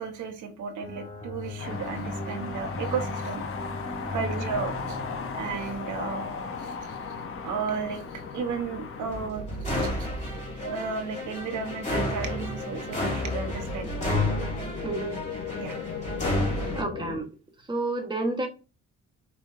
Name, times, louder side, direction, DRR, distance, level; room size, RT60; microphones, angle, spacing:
voice 1, 0.0-3.4 4.1-5.0 5.3-6.3 6.6-7.2 7.4-10.1 10.6-13.9 15.6-15.8, right 5 dB, 75° right, 1.2 m, -34 dB
sound 1, 0.8-16.8, left 1 dB, 25° left, 2.6 m, -33 dB
sound 2, 1.6-9.3, left 5 dB, 45° left, 0.9 m, -36 dB
sound 3, 6.4-17.2, left 7 dB, 85° left, 1.1 m, -39 dB
voice 2, 14.8-15.2 16.7-17.3 17.7-18.5, right 2 dB, 15° right, 1.4 m, -30 dB
5.5 x 3.2 x 2.7 m
cardioid pair, 90°, 30 cm